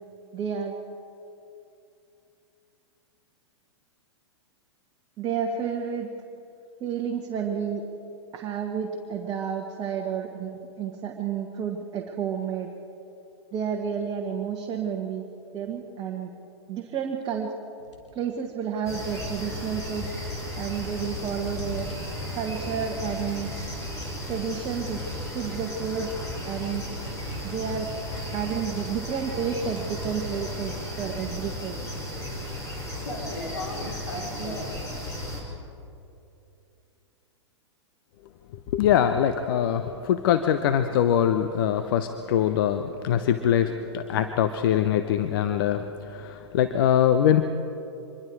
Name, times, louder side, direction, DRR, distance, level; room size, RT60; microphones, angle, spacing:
voice 1, 0.3-0.8 5.2-6.1 6.8-7.8 8.3-12.7 13.5-15.3 15.5-16.3 16.7-17.5 18.1-20.2 20.6-21.9 22.3-23.5 24.3-25.0 25.3-26.1 26.5-26.9 27.4-27.9 28.3-31.8 34.1-34.6, right 7 dB, 30° right, 1 dB, 1.5 m, -31 dB
sound 1, 17.8-18.2 18.6-19.5 20.0-34.7, left 2 dB, 80° left, 3.4 m, -41 dB
sound 2, 18.8-35.4, left 1 dB, 20° left, 5.5 m, -35 dB
voice 2, 38.7-47.5, left 10 dB, 50° left, 9 dB, 0.9 m, -23 dB
25.5 x 22.0 x 4.7 m, 2.8 s
figure-of-eight pair, 105°, 15 cm